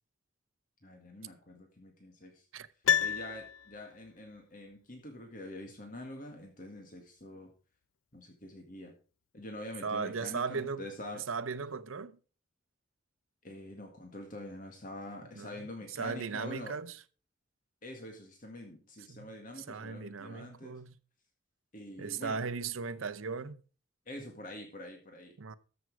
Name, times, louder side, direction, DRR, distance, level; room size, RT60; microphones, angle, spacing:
voice 1, 0.8-2.5 3.0-7.5 8.1-8.9 9.3-11.2 13.4-16.8 17.8-20.8 21.7-22.4 24.1-25.4, left 1 dB, 40° left, 1.9 m, -45 dB
Piano, 2.8-4.1 4.4-4.5, left 9 dB, 80° left, 0.4 m, -30 dB
voice 2, 9.8-10.9 11.3-12.2 15.4-15.5 16.0-17.0 19.1-19.3 19.6-21.0 22.0-23.6 25.4-25.6, right 5 dB, 80° right, 0.7 m, -37 dB
14.0 x 6.2 x 4.8 m
head